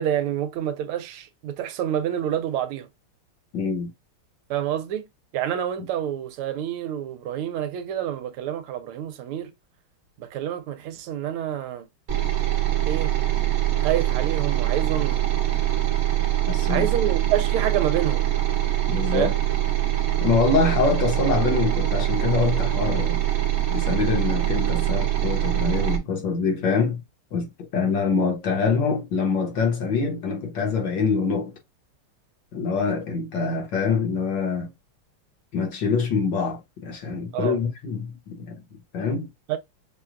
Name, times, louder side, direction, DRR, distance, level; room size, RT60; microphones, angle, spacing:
voice 1, 0.0-2.9 4.5-5.0 5.3-9.5 10.2-11.9 12.9-13.1 13.8-15.2 16.7-18.3 19.1-19.3 37.3-37.6 39.5-39.6, right 10 dB, 85° right, 1.5 m, -27 dB
voice 2, 3.5-3.9 16.5-16.9 18.9-19.3 20.2-23.2 23.7-27.0 27.3-31.5 32.5-34.7 35.5-38.5 38.9-39.3, left 5 dB, 60° left, 1.6 m, -25 dB
sound 1, 12.1-26.0, right 13 dB, 50° right, 1.1 m, -23 dB
6.1 x 2.2 x 2.4 m
omnidirectional pair, 2.4 m